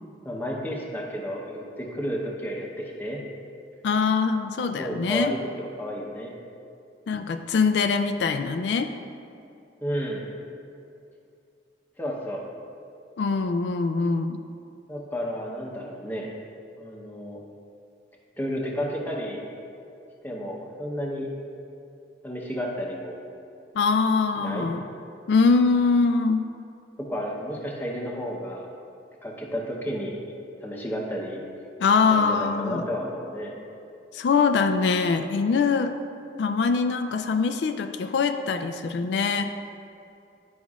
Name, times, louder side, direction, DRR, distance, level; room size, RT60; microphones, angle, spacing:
voice 1, 0.2-3.2 4.7-6.4 9.8-10.3 12.0-12.4 14.9-16.3 16.8-17.4 18.4-19.4 20.2-21.3 22.2-23.2 24.3-24.7 27.0-28.7 29.2-30.2 30.6-31.4 32.1-33.5, equal, 10° left, -2 dB, 0.8 m, -32 dB
voice 2, 3.8-5.3 7.1-8.9 13.2-14.4 23.7-24.8 25.3-26.4 31.8-32.8 34.1-35.9 36.4-39.5, left 4 dB, 75° left, 7 dB, 0.3 m, -23 dB
11.0 x 5.2 x 2.4 m, 2.6 s
head